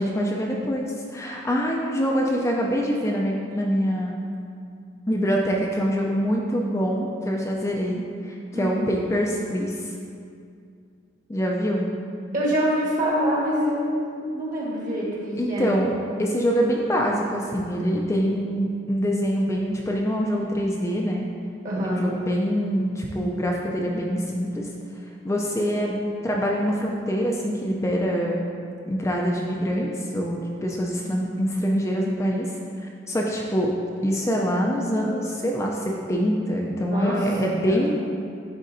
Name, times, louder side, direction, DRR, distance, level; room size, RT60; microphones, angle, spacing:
voice 1, 0.0-4.2 5.1-9.9 11.3-11.9 15.4-21.3 21.8-24.7 25.2-26.0 26.2-28.4 28.9-32.6 33.1-33.7 34.0-37.9, equal, 15° left, -1 dB, 0.4 m, -25 dB
voice 2, 12.3-15.7 21.6-22.0 36.8-37.2 37.7-37.8, equal, 45° right, -5 dB, 1.4 m, -25 dB
10.5 x 3.7 x 2.6 m, 2.4 s
head